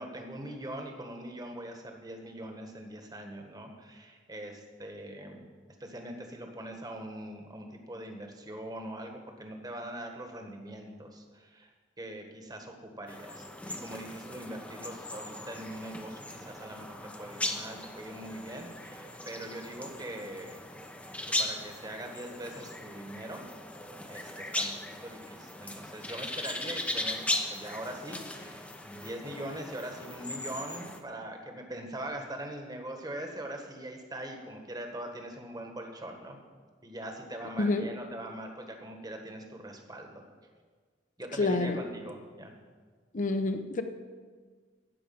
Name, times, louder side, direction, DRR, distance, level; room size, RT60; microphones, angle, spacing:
voice 1, 0.0-5.4 5.8-20.6 21.4-23.4 24.1-24.7 25.0-27.2 27.5-36.4 36.8-40.2 41.2-42.5, right 1 dB, 20° right, 3 dB, 1.4 m, -42 dB
sound 1, 13.1-31.0, left 1 dB, 5° left, 0.8 m, -38 dB
voice 2, 41.4-41.8 43.1-43.8, left 2 dB, 45° left, 7 dB, 0.8 m, -28 dB
13.0 x 5.0 x 8.6 m, 1.5 s
head